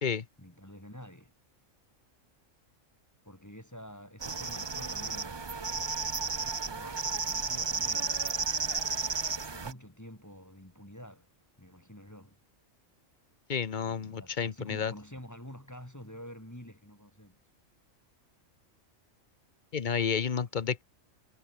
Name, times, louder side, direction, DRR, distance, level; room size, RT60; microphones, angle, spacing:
voice 1, 0.4-1.3 3.2-5.5 6.7-8.8 9.5-11.3 11.6-12.4 13.8-17.4 20.4-20.5, equal, 15° left, 3.5 m, -48 dB
sound 1, 4.2-9.7, right 4 dB, 25° right, 0.6 m, -33 dB
voice 2, 13.5-14.9 19.7-20.8, left 6 dB, 40° left, 1.0 m, -31 dB
omnidirectional pair, 1.3 m